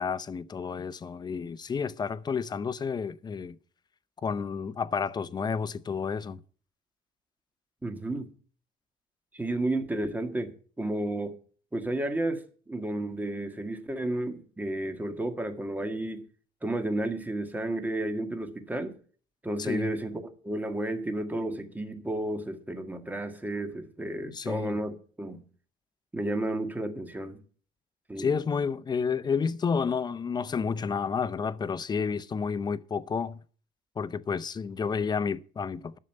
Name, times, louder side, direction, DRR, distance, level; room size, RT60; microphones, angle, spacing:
voice 1, 0.0-3.6 4.2-6.4 19.6-19.9 24.3-24.8 28.2-33.4 34.0-36.0, left 5 dB, 25° left, 0.6 m, -30 dB
voice 2, 7.8-8.3 9.3-10.5 10.8-11.3 11.7-16.2 16.6-18.9 19.4-25.4 26.1-27.4 28.1-28.3, right 1 dB, 10° right, 1.7 m, -32 dB
11.0 x 6.6 x 9.0 m
cardioid pair, 140°, 17 cm